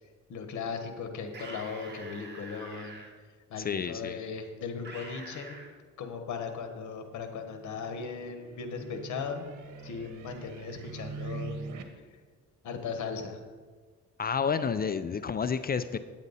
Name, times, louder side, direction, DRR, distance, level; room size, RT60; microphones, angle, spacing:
voice 1, 0.3-3.0 3.5-5.6 6.0-9.5 9.8-11.6 12.6-13.4, left 5 dB, 75° left, 6 dB, 1.3 m, -37 dB
sound 1, 1.3-3.1 4.8-5.7, right 3 dB, 35° right, 2.1 m, -45 dB
voice 2, 3.6-4.2 14.2-16.0, left 6 dB, 30° left, 13 dB, 0.4 m, -30 dB
sound 2, 6.9-11.8, right 3 dB, 75° right, 1.2 m, -43 dB
9.3 x 8.7 x 4.1 m, 1.5 s
cardioid pair, 90°, 30 cm